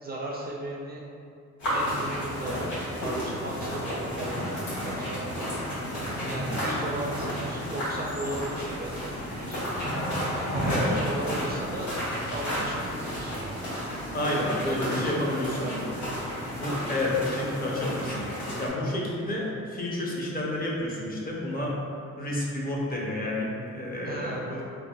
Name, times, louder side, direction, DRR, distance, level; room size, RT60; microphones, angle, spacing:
voice 1, 0.0-1.0 1.7-4.5 4.8-5.5 6.3-9.7 10.5-12.0 12.3-13.4 14.3-15.9 24.1-24.6, right 1 dB, 30° right, -3 dB, 0.4 m, -36 dB
sound 1, 1.6-18.7, equal, 75° left, 1.4 m, -32 dB
voice 2, 6.2-6.5 10.7-11.0 14.1-15.9 16.6-21.8 22.2-24.4, left 1 dB, 30° left, -4 dB, 0.6 m, -30 dB
3.3 x 2.4 x 2.3 m, 2.5 s
cardioid pair, 90°, 30 cm